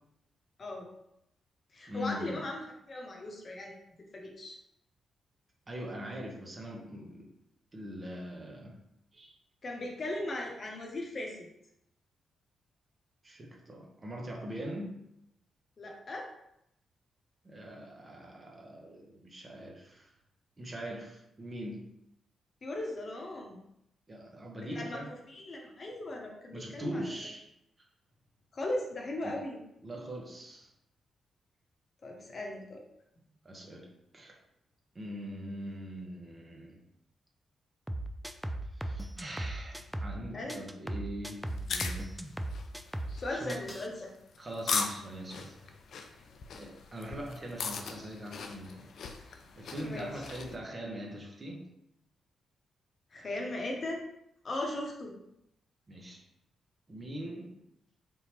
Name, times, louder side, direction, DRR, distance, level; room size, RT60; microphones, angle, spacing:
voice 1, 0.6-0.9 1.7-3.7 4.1-4.6 9.6-11.4 15.8-16.3 22.6-23.5 24.6-27.1 28.5-29.6 32.0-32.8 40.3-40.6 43.2-44.1 49.8-50.1 53.1-54.0 54.4-55.1, left 1 dB, 50° left, 0 dB, 0.9 m, -38 dB
voice 2, 1.9-2.5 5.7-7.3 7.7-8.8 9.1-9.3 13.2-14.9 17.4-20.1 20.6-21.8 24.1-25.1 26.5-27.5 29.2-29.4 29.8-30.7 33.4-34.4 34.9-36.8 38.7-42.2 43.3-43.6 44.4-46.3 46.5-48.9 49.2-51.7 55.9-56.2 56.9-57.5, equal, 35° right, 0 dB, 1.1 m, -42 dB
sound 1, 37.9-40.2 40.5-43.2 43.5-43.9, right 1 dB, 10° right, 0.4 m, -37 dB
sound 2, 41.5-50.6, left 5 dB, 65° left, 0.4 m, -39 dB
3.7 x 2.9 x 3.0 m, 0.79 s
hypercardioid pair, 40°, 0 cm